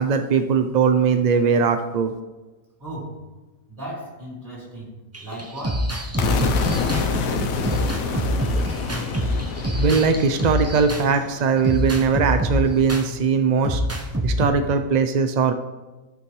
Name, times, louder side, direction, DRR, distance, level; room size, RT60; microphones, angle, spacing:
voice 1, 0.0-2.1 9.8-13.8 14.2-15.5, right 5 dB, 60° right, 7 dB, 0.4 m, -20 dB
voice 2, 2.8-3.3 3.7-5.9, right 1 dB, 35° right, -6 dB, 3.6 m, -36 dB
sound 1, 5.1-11.1 11.6-13.1 13.6-14.5, equal, 15° right, 0.6 m, -25 dB
sound 2, 6.2-12.0, left 5 dB, 80° left, 1.2 m, -28 dB
15.0 x 5.9 x 3.1 m, 1.2 s
omnidirectional pair, 1.5 m